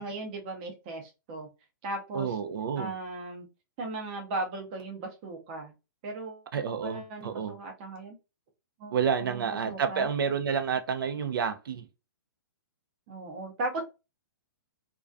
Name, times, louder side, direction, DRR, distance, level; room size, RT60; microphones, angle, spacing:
voice 1, 0.0-1.5 1.8-2.3 2.8-3.5 3.8-5.7 6.0-8.2 8.8-9.0 9.2-10.1 13.1-13.8, right 2 dB, 25° right, 0.5 m, -37 dB
voice 2, 2.1-2.9 6.5-7.6 8.9-11.9, right 7 dB, 80° right, 0.4 m, -29 dB
2.3 x 2.2 x 2.5 m
hypercardioid pair, 165°, 11 cm